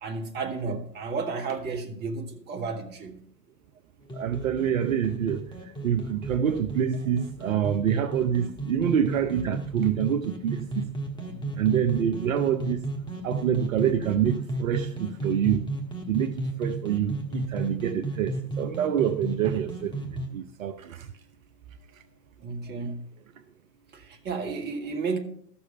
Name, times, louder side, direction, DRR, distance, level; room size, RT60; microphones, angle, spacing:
voice 1, 0.0-3.2 11.3-11.5 22.4-23.0 23.9-25.2, right 4 dB, 20° right, 1.5 m, -32 dB
sound 1, 4.1-20.3, right 2 dB, 10° left, 1.6 m, -33 dB
voice 2, 4.1-10.9 11.6-12.8 13.2-15.6 16.1-21.1, right 9 dB, 55° right, 0.8 m, -26 dB
13.0 x 7.1 x 5.4 m
figure-of-eight pair, 110°, 48 cm